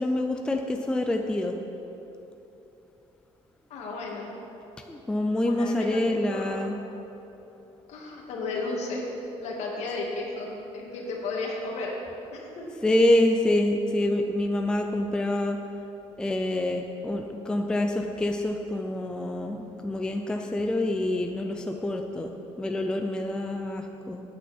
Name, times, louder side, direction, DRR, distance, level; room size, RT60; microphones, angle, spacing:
voice 1, 0.0-1.6 4.9-6.8 12.8-15.6 16.2-24.2, left 1 dB, 5° left, 4 dB, 0.4 m, -26 dB
voice 2, 3.7-4.3 5.4-6.6 7.9-9.0 9.4-11.9 12.3-12.6, left 3 dB, 65° left, -1 dB, 2.1 m, -34 dB
13.5 x 9.2 x 4.4 m, 3.0 s
cardioid pair, 175°, 12 cm